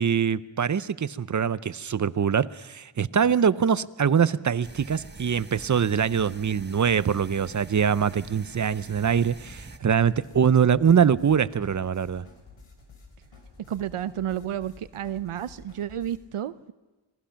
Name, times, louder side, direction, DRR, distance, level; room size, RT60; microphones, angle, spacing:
voice 1, 0.0-12.3, right 7 dB, 35° right, 16 dB, 0.6 m, -23 dB
sound 1, 4.6-9.8, right 3 dB, 20° right, 1.3 m, -45 dB
sound 2, 9.0-16.2, left 3 dB, 75° left, 4.3 m, -51 dB
voice 2, 13.7-16.7, right 10 dB, 80° right, 14 dB, 0.7 m, -31 dB
27.5 x 19.0 x 5.8 m, 1.2 s
wide cardioid pair, 85°, 50 cm